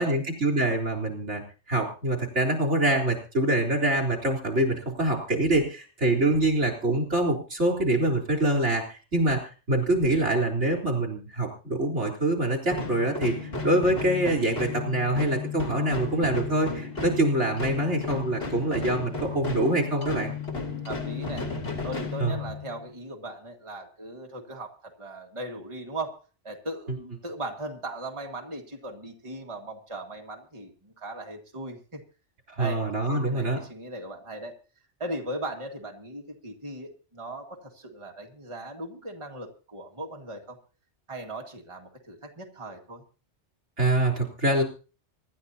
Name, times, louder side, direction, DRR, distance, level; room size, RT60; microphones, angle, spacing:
voice 1, 0.0-1.4 1.7-9.4 9.7-13.3 13.6-20.3 22.2-22.4 32.5-33.6 43.8-44.6, right 1 dB, 80° right, 2 dB, 4.0 m, -25 dB
sound 1, 12.7-22.8, left 4 dB, 60° left, 3.2 m, -34 dB
voice 2, 20.9-21.5 21.8-32.0 32.6-34.6 35.0-40.6 41.1-43.0, right 1 dB, 25° right, 1 dB, 2.0 m, -38 dB
25.0 x 12.0 x 2.8 m, 0.35 s
omnidirectional pair, 1.2 m